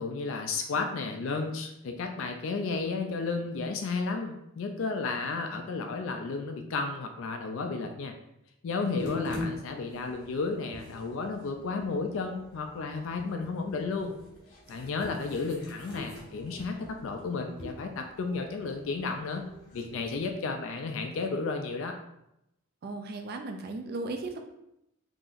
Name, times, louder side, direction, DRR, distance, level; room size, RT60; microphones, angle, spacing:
voice 1, 0.0-8.1 8.6-14.1 14.7-19.4 19.7-22.0, left 4 dB, 60° left, 4 dB, 0.3 m, -33 dB
sound 1, 9.0-20.3, left 2 dB, 35° left, 1.3 m, -44 dB
voice 2, 22.8-24.4, right 2 dB, 45° right, 4 dB, 0.3 m, -36 dB
3.9 x 2.8 x 2.5 m, 0.84 s
head